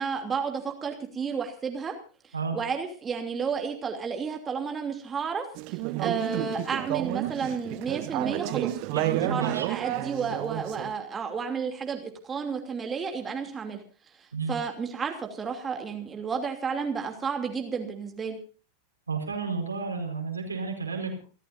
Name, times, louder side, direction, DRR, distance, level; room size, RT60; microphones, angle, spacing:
voice 1, 0.0-2.0 2.5-13.8 14.1-18.4, right 6 dB, 20° right, 4 dB, 2.9 m, -32 dB
Conversation / Chatter, 5.6-10.9, right 19 dB, 45° right, 0.8 m, -31 dB
voice 2, 8.9-9.7 14.3-14.5 19.1-21.2, right 5 dB, 75° right, 4 dB, 4.9 m, -31 dB
29.0 x 14.0 x 2.7 m, 0.38 s
figure-of-eight pair, 90°, 0 cm